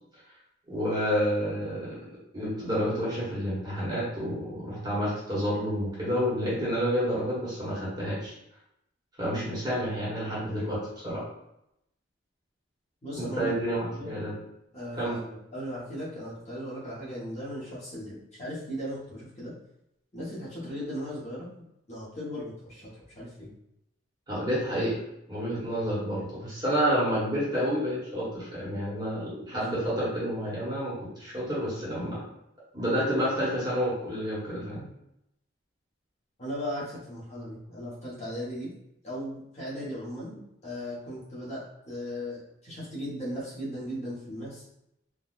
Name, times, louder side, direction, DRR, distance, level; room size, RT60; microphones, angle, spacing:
voice 1, 0.7-2.1 2.3-8.3 9.2-10.8 11.0-11.2 13.1-14.3 15.0-15.2 24.3-25.0 25.3-32.2 32.7-34.9, equal, 20° right, -8 dB, 1.1 m, -29 dB
voice 2, 13.0-13.5 13.9-14.1 14.7-19.5 20.1-21.5 21.9-23.5 29.5-29.7 36.4-38.7 39.0-44.6, equal, 35° left, -8 dB, 1.0 m, -37 dB
3.6 x 2.3 x 2.5 m, 0.82 s
head